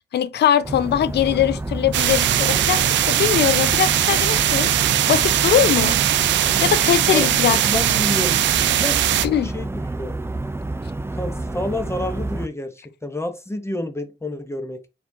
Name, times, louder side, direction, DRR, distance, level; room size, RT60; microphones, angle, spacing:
voice 1, 0.1-4.7 5.1-6.0 6.6-7.6 9.2-9.5, left 10 dB, 65° left, 0.5 m, -21 dB
sound 1, 0.6-12.5, right 2 dB, 15° right, 0.5 m, -29 dB
sound 2, 1.9-9.3, right 12 dB, 80° right, 0.4 m, -20 dB
voice 2, 7.6-9.2 9.4-10.2 11.1-14.8, left 1 dB, 15° left, 0.8 m, -29 dB
4.2 x 4.1 x 2.7 m
cardioid pair, 60°, 19 cm